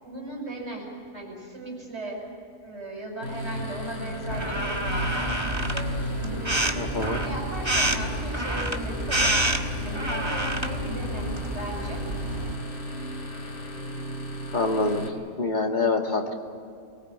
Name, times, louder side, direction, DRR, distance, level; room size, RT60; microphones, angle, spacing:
voice 1, 0.0-0.9 1.1-2.2 2.6-5.3 5.7-6.6 7.0-9.3 9.8-11.3 11.5-12.1, right 1 dB, 65° right, -1 dB, 7.6 m, -36 dB
sound 1, 3.2-15.1, equal, 80° left, 3.1 m, -35 dB
sound 2, 4.3-12.6, right 1 dB, 25° right, 1.5 m, -28 dB
voice 2, 6.8-7.2 14.5-15.0 15.4-16.3, left 3 dB, 40° left, 2 dB, 2.3 m, -25 dB
23.5 x 21.0 x 8.7 m, 2.3 s
omnidirectional pair, 1.2 m